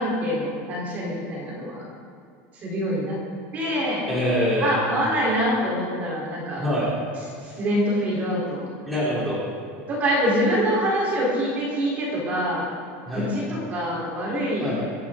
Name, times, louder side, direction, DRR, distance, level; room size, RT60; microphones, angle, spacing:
voice 1, 0.0-1.8 2.5-3.2 3.5-4.1 4.6-6.7 7.4-8.7 9.9-12.7 13.1-14.7, equal, 25° right, -5 dB, 3.7 m, -25 dB
voice 2, 4.1-4.8 6.6-6.9 8.9-9.4 13.1-13.3 14.6-14.8, left 1 dB, ahead, -10 dB, 3.5 m, -24 dB
25.0 x 11.5 x 3.8 m, 2.4 s
supercardioid pair, 180°, 7 cm